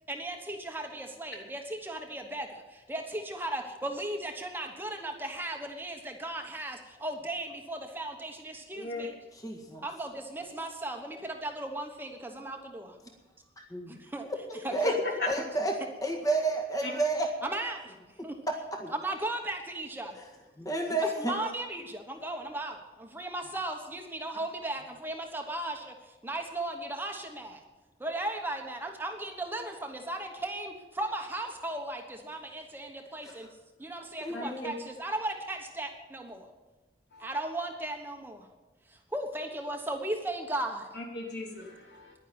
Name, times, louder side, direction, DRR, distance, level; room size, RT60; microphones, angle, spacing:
voice 1, 0.1-9.2 9.8-13.0 13.9-14.3 14.6-15.0 15.4-15.5 17.4-18.0 18.2-18.4 18.9-20.2 21.2-27.6 28.0-33.5 33.8-36.5 37.2-38.5 38.9-40.9, right 1 dB, 10° right, 3 dB, 1.2 m, -36 dB
voice 2, 8.7-9.1 14.8-14.9 15.2-15.3 16.8-16.9 34.3-34.7 37.1-37.3 40.9-42.1, left 1 dB, 75° left, 0 dB, 3.3 m, -35 dB
voice 3, 9.3-9.9 13.6-14.0 14.3-14.9 15.3-17.3 18.5-18.9 20.1-20.2 20.6-21.4 33.2-33.4 34.2-34.8, right 2 dB, 20° left, 2 dB, 1.7 m, -31 dB
11.0 x 10.0 x 8.7 m, 1.2 s
head